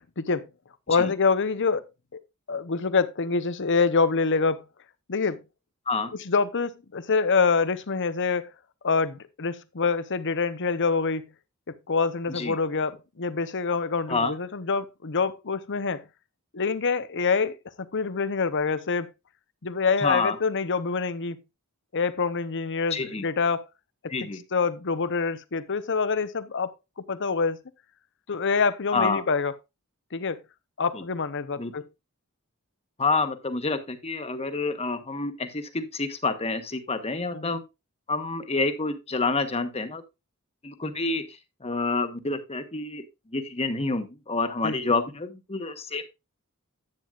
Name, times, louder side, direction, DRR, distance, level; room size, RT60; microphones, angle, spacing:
voice 1, 0.2-0.5 0.9-1.8 2.1-2.2 2.5-4.6 5.1-5.4 6.2-8.5 8.8-11.2 11.7-16.0 16.5-19.1 19.6-21.4 21.9-23.7 24.2-27.6 28.3-29.5 30.1-30.4 30.8-31.8 37.3-37.5 44.6-44.8, left 4 dB, 55° left, 0.9 m, -26 dB
voice 2, 20.0-20.4 22.9-23.2 24.1-24.4 28.9-29.2 30.9-31.0 31.6-31.7 33.0-37.6 38.1-40.0 40.6-43.0 43.3-46.1, left 3 dB, 30° left, 1.3 m, -28 dB
10.5 x 8.9 x 2.4 m
head